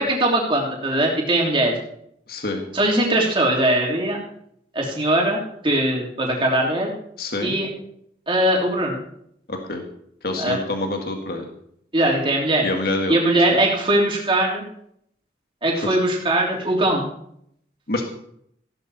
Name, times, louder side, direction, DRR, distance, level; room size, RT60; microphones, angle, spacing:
voice 1, 0.0-1.7 2.7-4.2 4.7-6.9 7.4-7.7 8.3-9.0 10.4-10.6 11.9-12.7 13.1-14.6 15.6-17.1, right 1 dB, 30° right, -1 dB, 3.2 m, -20 dB
voice 2, 2.3-2.6 7.2-7.6 9.5-9.8 10.2-11.5 12.6-13.2 13.5-13.6 15.8-16.0 17.9-18.0, left 2 dB, 55° left, 3 dB, 2.0 m, -26 dB
15.5 x 12.0 x 4.3 m, 0.69 s
head